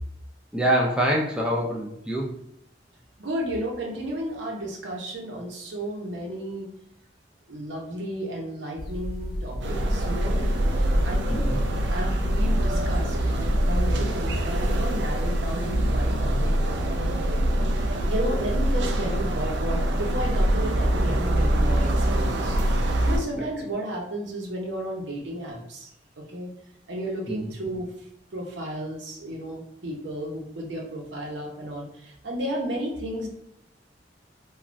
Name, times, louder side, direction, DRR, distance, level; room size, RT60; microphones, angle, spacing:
voice 1, 0.5-2.3 11.3-11.6 23.3-23.4 27.3-27.5, right 1 dB, 5° right, -2 dB, 0.4 m, -25 dB
voice 2, 3.2-6.7 7.5-10.4 11.0-11.5 11.9-16.5 18.0-22.6 23.0-25.9 26.2-26.5 26.9-27.9 28.3-33.3, right 1 dB, 90° right, -1 dB, 0.8 m, -33 dB
sound 1, 8.8-14.0, equal, 55° left, 0.4 m, -32 dB
sound 2, 9.6-23.2, right 1 dB, 70° right, 0.4 m, -24 dB
3.2 x 2.3 x 2.5 m, 0.78 s
head